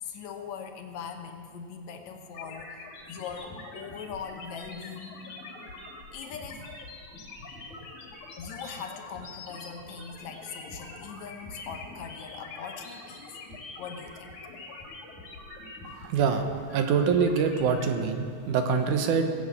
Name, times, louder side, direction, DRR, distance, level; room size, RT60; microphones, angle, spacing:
voice 1, 0.0-2.8 3.1-5.2 6.1-6.6 8.4-13.4 13.8-14.3, left 6 dB, 65° left, 4 dB, 2.2 m, -41 dB
sound 1, 2.3-17.9, left 3 dB, 85° left, 4.4 m, -44 dB
voice 2, 16.0-19.4, right 6 dB, 70° right, 6 dB, 2.4 m, -25 dB
18.0 x 8.0 x 8.5 m, 2.1 s
omnidirectional pair, 3.9 m